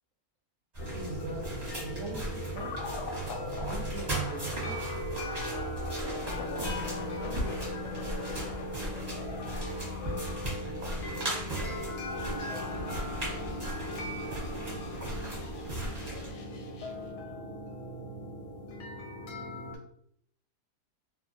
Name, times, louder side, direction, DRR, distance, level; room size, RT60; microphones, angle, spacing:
sound 1, 0.7-16.3, right 1 dB, 30° right, 0.9 m, -38 dB
sound 2, 0.8-19.8, left 1 dB, 70° left, 0.9 m, -39 dB
voice 1, 0.9-1.5 1.8-2.7 3.6-4.8, right 3 dB, 65° right, -3 dB, 0.8 m, -41 dB
sound 3, 2.6-17.1, left 4 dB, 85° left, 1.2 m, -46 dB
voice 2, 7.0-9.7 10.6-12.0 12.3-15.3, left 1 dB, 45° left, -4 dB, 0.5 m, -50 dB
2.8 x 2.3 x 2.5 m, 0.67 s
omnidirectional pair, 1.7 m